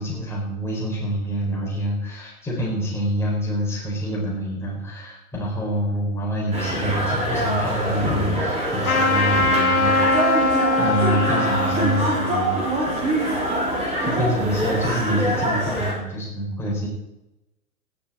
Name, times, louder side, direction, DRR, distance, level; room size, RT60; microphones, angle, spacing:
voice 1, 0.0-12.6 14.0-16.9, equal, 5° left, -4 dB, 4.7 m, -26 dB
sound 1, 6.5-15.9, right 1 dB, 15° right, 3.6 m, -24 dB
Trumpet, 8.8-13.9, left 2 dB, 85° left, 2.3 m, -23 dB
18.0 x 7.0 x 4.5 m, 0.91 s
figure-of-eight pair, 115°, 43 cm